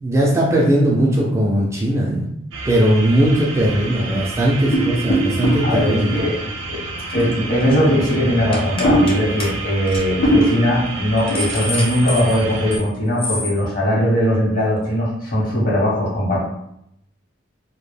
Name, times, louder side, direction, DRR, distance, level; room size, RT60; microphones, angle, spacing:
voice 1, 0.0-2.3 2.7-6.1, right 1 dB, 15° right, -4 dB, 0.3 m, -18 dB
sound 1, 2.5-12.8, right 2 dB, 70° right, 0.5 m, -30 dB
sound 2, 4.7-6.5 7.1-8.2 8.8-9.5 9.9-10.0 10.2-10.8 11.3-11.6, right 1 dB, 90° left, 0.5 m, -21 dB
voice 2, 5.6-6.4 6.7-6.8 7.1-16.4, equal, 45° left, -5 dB, 0.9 m, -19 dB
sound 3, 7.1-7.3 7.6-7.9 8.5-9.1 9.4-9.5 9.9-10.0 10.4-10.5 11.0-12.9 13.2-13.5, left 1 dB, 25° left, 0.6 m, -28 dB
2.2 x 2.1 x 3.2 m, 0.78 s
head